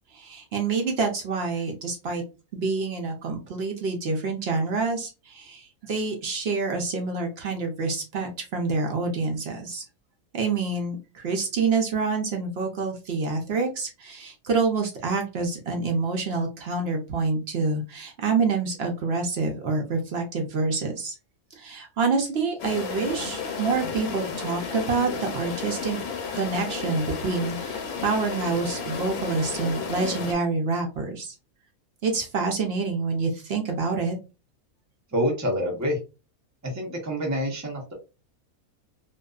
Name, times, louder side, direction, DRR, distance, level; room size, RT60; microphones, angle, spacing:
voice 1, 0.1-2.2 2.5-9.8 10.3-21.1 21.6-26.0 26.3-31.3 32.0-34.2, right 4 dB, 60° right, 2 dB, 0.7 m, -27 dB
sound 1, 22.6-30.3, left 5 dB, 85° left, 1.1 m, -32 dB
voice 2, 35.1-36.0 36.6-37.9, equal, 25° right, 0 dB, 0.3 m, -27 dB
2.6 x 2.3 x 2.2 m, 0.30 s
omnidirectional pair, 1.5 m